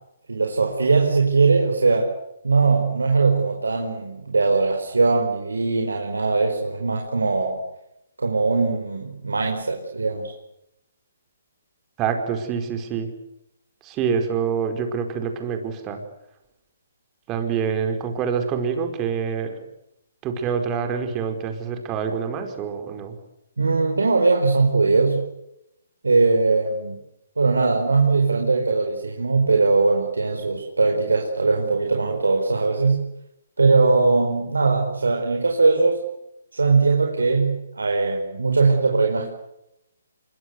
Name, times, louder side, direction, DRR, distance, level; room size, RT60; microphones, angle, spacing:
voice 1, 0.3-2.2 2.4-7.6 8.2-10.3 23.6-25.3 26.0-27.0 27.4-33.0 33.6-36.0 36.5-39.3, right 3 dB, 90° right, 2 dB, 4.9 m, -20 dB
voice 2, 12.0-13.1 13.8-16.0 17.3-19.6 20.2-23.2, right 6 dB, 20° right, 5 dB, 4.9 m, -26 dB
26.0 x 23.0 x 8.1 m, 0.84 s
hypercardioid pair, 150°, 0 cm